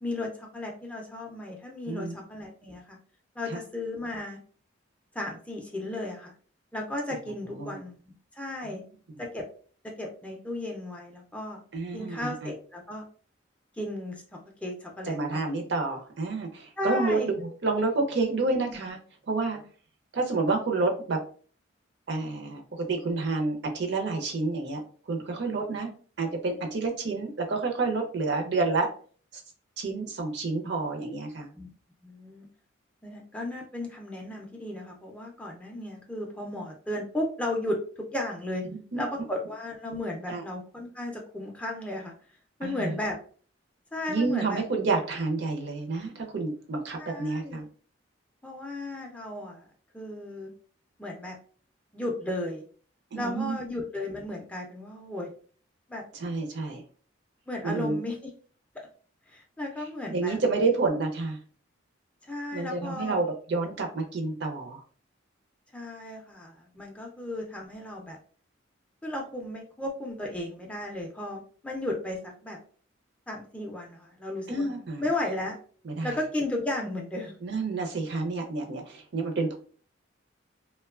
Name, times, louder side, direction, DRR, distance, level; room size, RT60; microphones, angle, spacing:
voice 1, 0.0-3.0 3.4-4.4 5.1-6.3 6.7-8.8 9.2-9.4 10.0-11.6 11.9-13.0 13.7-15.5 16.8-17.3 18.3-18.8 31.6-31.7 32.0-32.5 33.0-37.8 38.1-38.7 38.9-42.1 42.6-43.2 43.9-44.6 47.0-47.6 48.4-49.7 49.9-50.5 51.0-51.4 51.9-52.6 53.1-55.3 55.9-56.0 57.5-58.3 59.3-60.4 62.2-63.2 65.7-68.2 69.0-72.6 73.3-74.7 75.0-75.6 76.0-77.4, left 1 dB, 5° left, 0 dB, 0.3 m, -34 dB
voice 2, 1.9-2.2 3.5-3.6 7.6-7.8 11.7-12.5 15.1-19.0 19.3-19.6 20.1-21.2 22.1-24.8 25.1-25.9 26.2-28.9 29.3-29.4 29.8-31.5 38.9-39.0 40.3-40.4 42.6-42.9 44.1-47.6 53.1-53.6 56.1-56.8 57.6-58.0 59.8-61.4 62.5-64.8 74.5-75.0 75.8-76.1 77.4-79.5, right 3 dB, 60° right, 3 dB, 0.5 m, -29 dB
2.9 x 2.1 x 2.3 m, 0.43 s
head